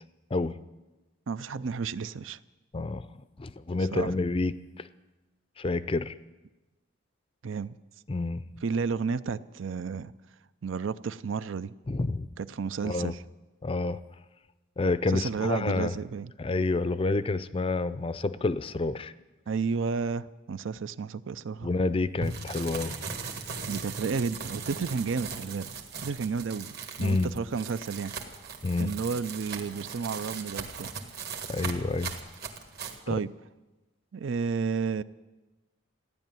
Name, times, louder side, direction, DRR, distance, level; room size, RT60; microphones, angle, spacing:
voice 1, 1.3-2.4 3.9-4.1 7.4-7.7 8.6-10.1 10.6-11.7 12.4-13.2 15.1-16.3 19.5-21.7 23.7-25.7 26.0-28.1 28.8-30.9 33.1-33.3 34.1-35.0, right 5 dB, 70° right, 15 dB, 0.5 m, -32 dB
voice 2, 2.7-3.1 3.4-4.9 5.6-6.1 8.1-8.4 11.9-12.3 12.8-13.1 13.6-14.0 14.8-16.0 16.4-19.1 21.6-22.9 27.0-27.3 28.6-28.9 31.5-32.1, left 3 dB, 25° left, 15 dB, 0.4 m, -28 dB
sound 1, 22.2-33.0, right 5 dB, 50° right, 1.7 m, -39 dB
15.0 x 10.5 x 9.1 m, 1.1 s
head